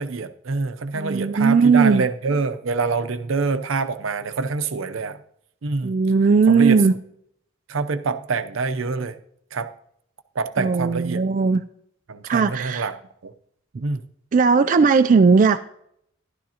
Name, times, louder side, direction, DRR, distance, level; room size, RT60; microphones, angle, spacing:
voice 1, 0.0-5.2 5.6-5.9 6.5-6.8 7.7-9.2 9.5-9.7 10.4-11.2 12.1-12.9 13.2-13.3 13.8-14.0, right 4 dB, 80° right, 10 dB, 0.6 m, -25 dB
voice 2, 0.9-2.0 5.8-6.9 10.6-11.6 12.2-12.9 14.3-15.6, right 5 dB, 40° right, 8 dB, 0.3 m, -17 dB
12.0 x 11.5 x 2.8 m, 0.71 s
head